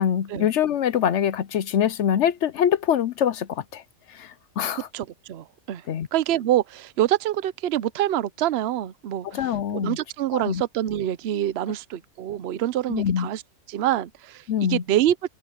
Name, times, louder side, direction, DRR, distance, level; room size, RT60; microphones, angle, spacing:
voice 1, 0.0-4.9 5.9-6.1 9.2-10.0 10.3-10.6 12.9-13.3 14.5-14.8, left 9 dB, 65° left, 0.9 m, -24 dB
voice 2, 4.7-5.8 6.1-9.4 9.7-13.4 13.7-14.4 14.7-15.3, right 12 dB, 60° right, 0.8 m, -26 dB
omnidirectional pair, 1.4 m